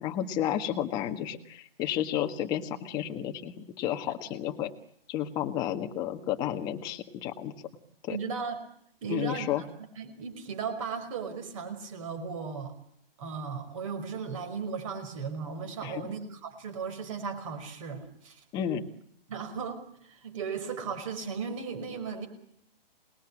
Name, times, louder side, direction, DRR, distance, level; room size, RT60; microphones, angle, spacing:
voice 1, 0.0-4.7 5.1-7.5 8.0-8.2 9.1-9.6 15.8-16.0 18.5-18.8, left 11 dB, 15° left, 6 dB, 1.6 m, -32 dB
voice 2, 8.1-8.6 9.0-9.7 10.0-12.7 13.2-18.4 19.3-22.3, right 5 dB, 35° right, 6 dB, 5.4 m, -36 dB
28.0 x 21.0 x 10.0 m, 0.71 s
hypercardioid pair, 170°, 29 cm